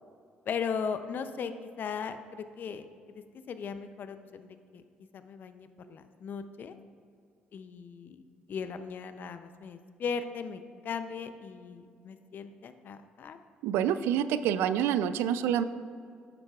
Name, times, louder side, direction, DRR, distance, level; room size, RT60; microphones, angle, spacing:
voice 1, 0.5-4.6 5.1-6.7 7.5-8.2 8.5-13.4, left 6 dB, 55° left, 10 dB, 0.5 m, -38 dB
voice 2, 13.6-15.6, right 9 dB, 80° right, 12 dB, 0.3 m, -27 dB
9.8 x 8.0 x 2.4 m, 2.3 s
supercardioid pair, 75°, 4 cm